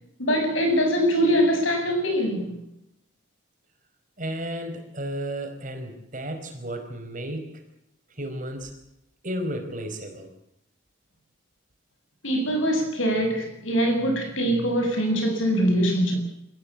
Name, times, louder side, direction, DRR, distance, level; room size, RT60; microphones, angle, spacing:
voice 1, 0.2-2.6 12.2-16.2, equal, 80° left, 7.4 m, -23 dB
voice 2, 4.2-7.6 8.1-8.8 9.2-10.3, right 1 dB, 40° right, 4.8 m, -33 dB
27.5 x 15.5 x 8.5 m
head